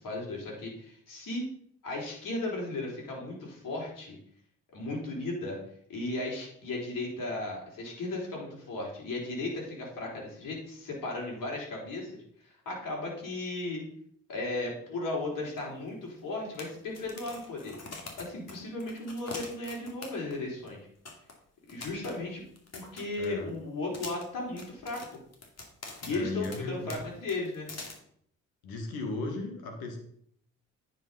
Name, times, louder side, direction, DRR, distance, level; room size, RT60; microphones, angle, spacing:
voice 1, 0.0-1.5 1.8-4.2 4.7-5.6 5.9-13.8 14.3-17.7 18.2-20.8 21.7-22.4 22.7-25.0 26.0-27.7, left 2 dB, 60° left, -2 dB, 4.0 m, -36 dB
sound 1, 15.6-15.7 15.9-16.0 16.5-20.4 20.7-20.8 21.0-21.3 21.7-23.5 23.9-26.6 26.9-27.0 27.3-27.9, left 3 dB, 45° left, 2.7 m, -44 dB
voice 2, 23.2-23.5 26.1-27.0 28.6-30.0, left 3 dB, 80° left, 4 dB, 2.0 m, -36 dB
9.4 x 5.4 x 5.6 m, 0.65 s
hypercardioid pair, 45°, 36 cm